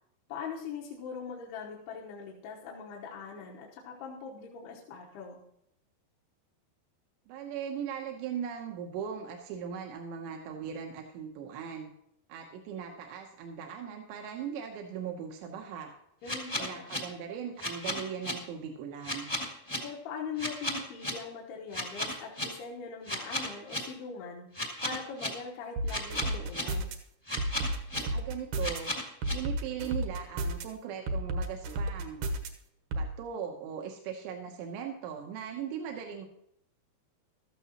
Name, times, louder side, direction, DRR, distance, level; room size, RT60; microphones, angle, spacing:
voice 1, 0.3-5.4 16.2-16.9 19.8-24.5 24.8-26.9, left 5 dB, 70° left, -3 dB, 3.0 m, -41 dB
voice 2, 7.3-11.9 12.3-15.9 16.6-19.3 28.1-28.9 29.3-32.3 32.9-36.3, right 8 dB, 85° right, 2 dB, 3.2 m, -39 dB
sound 1, 16.2-17.0 17.6-18.3 19.0-19.8 20.4-21.1 21.7-22.4 23.1-23.8 24.5-25.3 25.9-26.6 27.3-28.0 28.6-29.3, left 1 dB, 20° left, 0.7 m, -33 dB
sound 2, 25.8-27.0 27.4-28.8 29.2-30.6 31.1-32.5 32.9-33.1, right 1 dB, 70° right, 2.0 m, -32 dB
15.0 x 13.0 x 2.9 m, 0.74 s
omnidirectional pair, 4.9 m